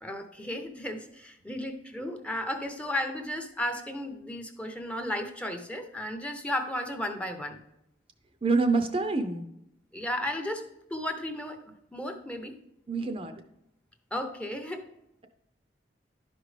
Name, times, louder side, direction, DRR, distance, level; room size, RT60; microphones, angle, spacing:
voice 1, 0.0-7.6 9.9-10.6 10.9-12.5 14.1-14.8, left 1 dB, 5° left, 6 dB, 0.7 m, -34 dB
voice 2, 8.4-9.5 12.9-13.3, right 3 dB, 30° right, 7 dB, 0.5 m, -26 dB
11.0 x 5.2 x 3.2 m, 0.81 s
head